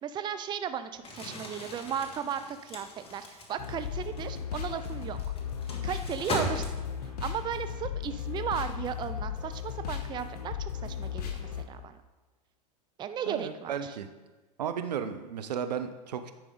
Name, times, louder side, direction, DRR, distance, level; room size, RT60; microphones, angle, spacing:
voice 1, 0.0-5.3 5.8-6.7 7.2-11.9 13.0-14.0, right 8 dB, 20° right, 10 dB, 0.4 m, -36 dB
Crumpling crinkling, 1.0-7.2, left 1 dB, 25° left, 1.7 m, -39 dB
sound 1, 3.6-11.6, left 8 dB, 70° left, 1.1 m, -36 dB
voice 2, 13.3-14.1 14.6-16.3, right 8 dB, 80° right, 9 dB, 0.6 m, -34 dB
10.0 x 4.9 x 3.8 m, 1.2 s
hypercardioid pair, 95°, 21 cm